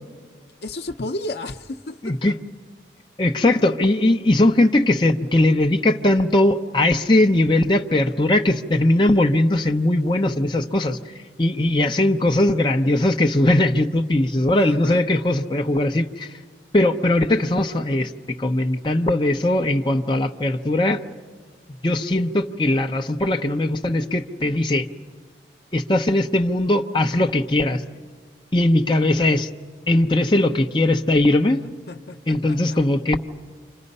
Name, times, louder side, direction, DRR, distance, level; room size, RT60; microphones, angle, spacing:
voice 1, 0.6-2.4 14.5-15.1 31.9-32.8, left 2 dB, 65° left, 0.8 m, -33 dB
voice 2, 2.0-2.3 3.2-11.0 11.4-16.3 16.7-18.1 18.4-21.0 21.8-24.9 25.7-27.8 28.5-29.5 29.9-31.6 32.3-33.2, left 1 dB, 25° left, 0.8 m, -19 dB
29.5 x 26.0 x 5.5 m
head